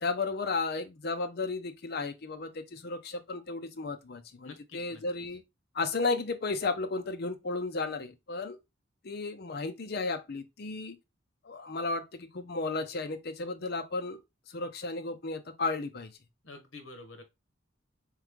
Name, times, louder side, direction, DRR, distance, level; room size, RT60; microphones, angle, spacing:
voice 1, 0.0-5.4 5.7-8.6 9.0-11.0 11.4-14.2 14.5-16.1, left 3 dB, 50° left, 0.6 m, -34 dB
voice 2, 4.4-5.0 16.4-17.2, left 3 dB, 70° left, 1.1 m, -48 dB
3.7 x 3.2 x 3.5 m
head